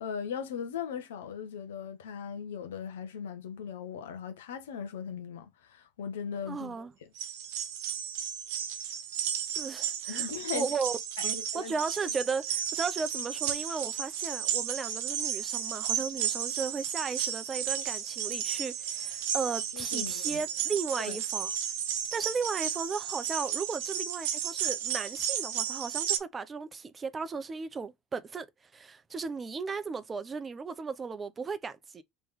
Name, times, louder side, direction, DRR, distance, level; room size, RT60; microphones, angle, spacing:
voice 1, 0.0-6.8 7.0-7.1 10.1-10.7 11.2-11.7 19.7-20.4 21.0-21.2, left 7 dB, 80° left, 0.8 m, -38 dB
voice 2, 6.5-6.9 9.6-10.3 10.5-11.0 11.2-21.5 22.1-28.5 28.7-32.0, right 5 dB, 30° right, 0.6 m, -35 dB
sound 1, 7.2-26.2, right 9 dB, 70° right, 0.7 m, -33 dB
3.3 x 3.1 x 3.5 m
hypercardioid pair, 75°, 0 cm